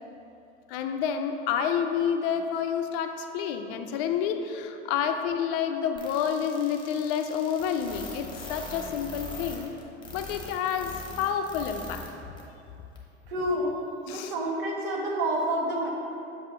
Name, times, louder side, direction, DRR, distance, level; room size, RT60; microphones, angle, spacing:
voice 1, 0.7-9.7 10.1-12.1 14.1-14.3, left 8 dB, 60° left, 6 dB, 0.5 m, -29 dB
sound 1, 6.0-12.1 12.4-12.5 13.0-13.1, left 2 dB, 15° left, 1.2 m, -41 dB
voice 2, 13.3-13.8 14.1-15.9, right 1 dB, 60° right, -1 dB, 1.3 m, -28 dB
7.4 x 2.7 x 5.4 m, 2.7 s
hypercardioid pair, 85°, 33 cm